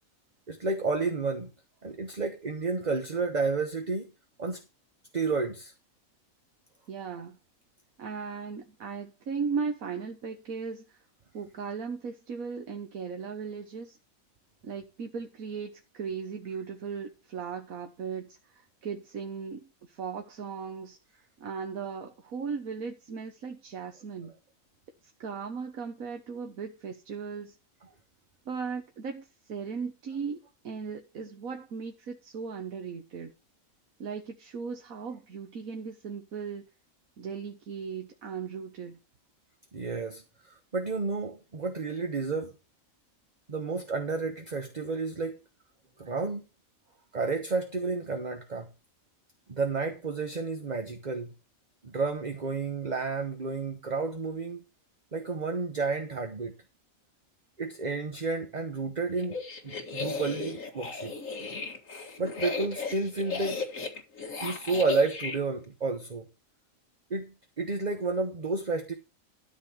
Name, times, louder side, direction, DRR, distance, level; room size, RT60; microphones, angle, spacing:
voice 1, 0.5-1.5 1.8-4.1 4.4-4.6 5.1-5.7 39.7-42.5 43.5-45.4 46.0-46.4 47.1-48.7 49.5-51.3 51.8-54.6 55.1-56.6 57.6-59.4 59.6-61.1 62.2-63.6 64.4-66.3 67.1-68.9, right 3 dB, 35° right, 1.2 m, -31 dB
voice 2, 6.9-7.4 8.0-11.0 11.3-14.0 14.6-21.0 21.4-24.3 25.2-27.6 28.5-33.3 34.0-36.7 37.2-39.0, right 5 dB, 90° right, 1.6 m, -37 dB
sound 1, 59.2-65.4, left 4 dB, 70° left, 2.3 m, -35 dB
13.0 x 4.4 x 7.2 m
omnidirectional pair, 1.4 m